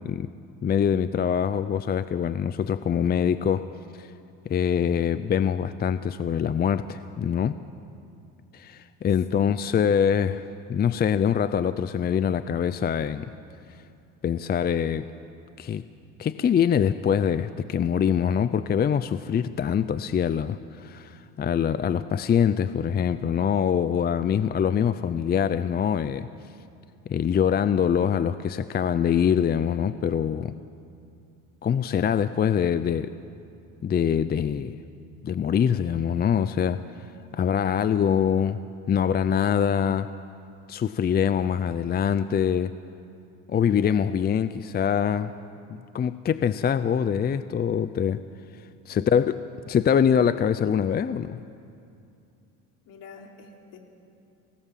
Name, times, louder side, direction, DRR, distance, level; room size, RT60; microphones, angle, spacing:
voice 1, 0.6-3.7 4.0-4.1 4.5-7.6 8.5-13.3 14.2-15.1 15.6-15.8 16.2-26.3 27.1-30.5 31.6-33.1 33.8-34.8 35.2-36.8 37.3-38.6 38.9-40.1 40.7-42.7 43.5-45.3 45.7-48.2 48.9-49.4 49.7-51.4, left 8 dB, 25° left, 13 dB, 0.5 m, -24 dB
voice 2, 9.3-9.8 48.9-49.1 52.9-53.8, left 5 dB, 65° left, 1 dB, 3.8 m, -47 dB
28.5 x 18.5 x 7.5 m, 2.5 s
cardioid pair, 115°, 35 cm